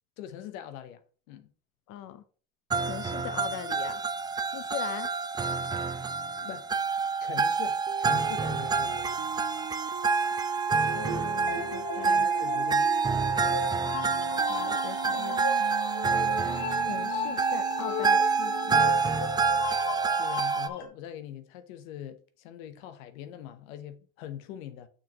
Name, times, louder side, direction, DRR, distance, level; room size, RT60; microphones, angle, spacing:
voice 1, 0.2-1.0 1.3-1.5 6.4-6.7 7.2-9.1 11.9-12.9 20.2-24.9, left 10 dB, 85° left, 1.0 m, -42 dB
voice 2, 1.9-2.2 2.8-4.0 4.5-5.1 10.9-12.3 14.5-15.4 16.8-18.9, left 11 dB, 55° left, 0.8 m, -40 dB
sound 1, 2.7-20.7, right 5 dB, 10° right, 0.3 m, -28 dB
sound 2, 7.9-13.3 13.9-18.9 19.9-20.2, right 16 dB, 65° right, 0.5 m, -42 dB
sound 3, 10.8-20.9, left 4 dB, 70° left, 1.7 m, -37 dB
6.6 x 6.1 x 3.0 m
supercardioid pair, 100°, 39 cm